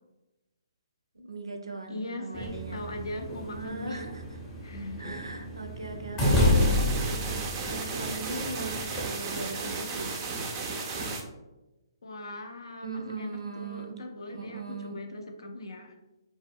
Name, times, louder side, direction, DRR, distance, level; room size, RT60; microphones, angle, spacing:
voice 1, 1.1-2.9 3.4-4.2 5.0-10.1 12.8-13.9 14.3-15.0, right 2 dB, 85° right, 4 dB, 0.4 m, -39 dB
voice 2, 1.9-4.1 4.6-5.1 12.0-16.0, left 1 dB, 70° left, 4 dB, 0.4 m, -40 dB
sound 1, 2.3-9.0, left 1 dB, 20° left, 0.6 m, -30 dB
sound 2, 6.2-11.2, right 4 dB, 25° right, 0.4 m, -34 dB
2.1 x 2.0 x 3.4 m, 1.0 s
figure-of-eight pair, 135°, 3 cm